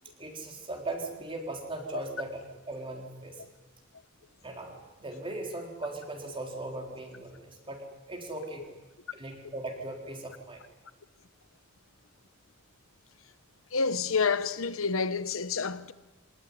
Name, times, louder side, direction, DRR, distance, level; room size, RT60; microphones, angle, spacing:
voice 1, 0.2-3.4 4.4-8.6 9.1-10.6, right 2 dB, 25° right, 4.2 m, -38 dB
voice 2, 13.7-15.9, left 5 dB, 90° left, 1.0 m, -28 dB
25.0 x 18.5 x 9.7 m
head